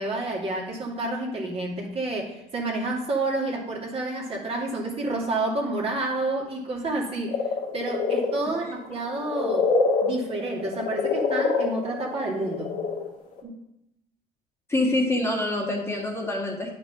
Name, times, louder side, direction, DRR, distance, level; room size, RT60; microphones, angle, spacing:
voice 1, 0.0-7.4 7.7-9.7 10.0-12.7 13.4-13.6, right 2 dB, 40° right, -2 dB, 2.4 m, -29 dB
sound 1, 7.3-13.1 13.3-13.4, left 4 dB, 65° left, 2.1 m, -25 dB
voice 2, 14.7-16.7, left 1 dB, 15° left, -1 dB, 1.8 m, -25 dB
10.0 x 5.6 x 3.9 m, 0.81 s
supercardioid pair, 95°, 15 cm